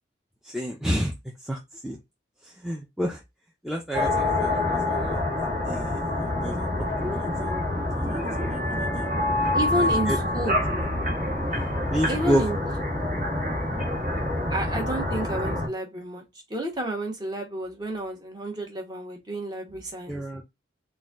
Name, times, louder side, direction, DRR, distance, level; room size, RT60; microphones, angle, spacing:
voice 1, 0.4-1.1 1.4-2.0 2.4-3.2 3.6-5.2 5.6-7.6 8.0-9.1 9.7-10.2 10.7-10.9 11.9-12.4 20.1-20.4, equal, ahead, 0.4 m, -30 dB
sound 1, 3.9-15.7, left 1 dB, 40° right, 1.6 m, -26 dB
voice 2, 9.5-10.6 12.1-12.6 14.5-16.2 16.5-20.2, right 1 dB, 20° right, 1.0 m, -30 dB
4.1 x 2.2 x 3.6 m
head